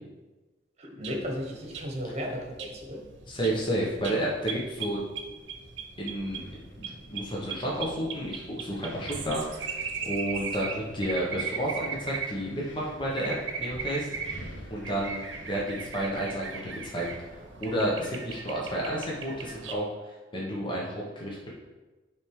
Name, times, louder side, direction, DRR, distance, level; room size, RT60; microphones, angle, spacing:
voice 1, 0.8-3.0, equal, 35° right, 1 dB, 1.3 m, -35 dB
sound 1, 1.0-19.7, right 6 dB, 75° right, 0.9 m, -39 dB
voice 2, 3.3-5.0 6.0-6.4 6.8-13.3 13.6-14.4 14.7-17.1 17.6-19.9 20.3-21.5, right 1 dB, 25° left, -4 dB, 1.2 m, -31 dB
Wind, 5.4-18.0, equal, 85° left, 1.7 m, -49 dB
10.0 x 3.6 x 4.8 m, 1.2 s
head